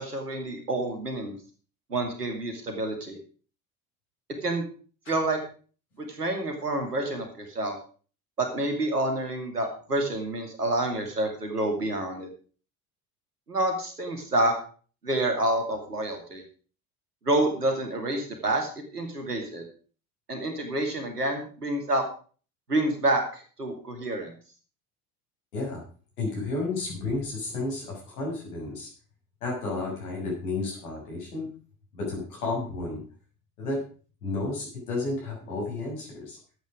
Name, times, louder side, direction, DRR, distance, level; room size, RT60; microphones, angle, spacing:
voice 1, 0.0-1.3 1.9-3.2 4.4-4.6 5.1-5.4 6.0-7.7 8.4-12.3 13.5-14.5 15.0-16.4 17.3-19.6 20.3-22.0 22.7-24.3, right 1 dB, 85° right, 4 dB, 2.5 m, -28 dB
voice 2, 26.2-28.9 29.4-31.5 31.9-33.0 33.6-33.8 34.2-36.4, left 3 dB, 70° left, -2 dB, 6.3 m, -32 dB
13.0 x 8.6 x 5.0 m, 0.39 s
figure-of-eight pair, 65°, 46 cm